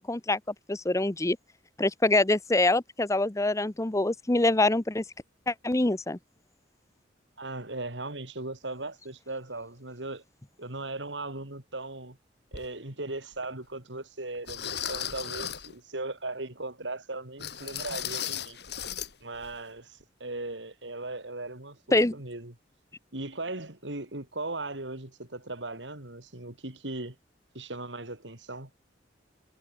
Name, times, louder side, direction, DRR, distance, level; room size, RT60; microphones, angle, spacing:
voice 1, 0.1-0.4 0.7-1.4 1.8-5.0 5.5-6.2 21.9-22.2, left 2 dB, 15° left, 0.8 m, -25 dB
voice 2, 7.4-10.2 10.6-12.2 12.5-18.6 19.2-22.5 23.1-27.2 27.5-28.7, right 2 dB, 80° right, 4.0 m, -38 dB
sound 1, 12.5-12.7 13.3-13.4 14.5-15.7 17.4-19.1 19.4-19.6 20.0-20.1, left 9 dB, 65° left, 6.4 m, -35 dB
head